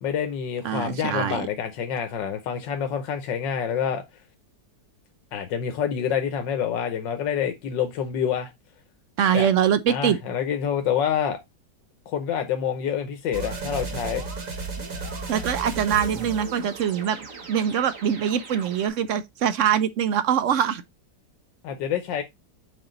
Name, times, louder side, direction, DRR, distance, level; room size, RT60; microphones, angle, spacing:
voice 1, 0.0-4.0 5.3-8.5 9.3-9.5 9.9-11.4 12.1-14.3 21.6-22.2, left 8 dB, 90° left, 1.6 m, -27 dB
voice 2, 0.6-1.5 9.2-10.2 15.3-20.8, right 9 dB, 80° right, 0.7 m, -23 dB
sound 1, 13.3-18.9, right 3 dB, 50° right, 1.6 m, -35 dB
6.5 x 4.6 x 3.8 m
omnidirectional pair, 1.9 m